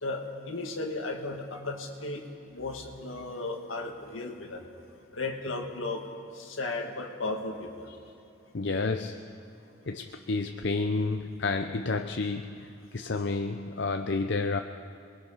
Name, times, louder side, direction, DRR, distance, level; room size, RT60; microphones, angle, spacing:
voice 1, 0.0-2.2 2.5-4.7 5.1-6.1 6.4-7.9, left 2 dB, 75° left, 3 dB, 2.1 m, -35 dB
voice 2, 8.5-9.3 9.9-14.6, left 3 dB, 55° left, 6 dB, 0.6 m, -30 dB
27.0 x 20.5 x 5.7 m, 2.5 s
head